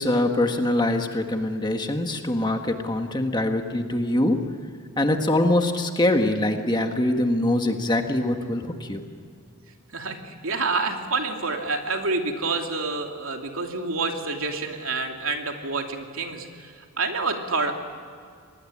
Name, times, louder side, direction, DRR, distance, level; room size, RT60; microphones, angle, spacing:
voice 1, 0.0-4.4 5.0-9.0, left 1 dB, 20° left, 5 dB, 1.6 m, -23 dB
voice 2, 9.9-17.7, right 3 dB, 70° right, 3 dB, 2.8 m, -28 dB
26.0 x 19.5 x 10.0 m, 2.2 s
head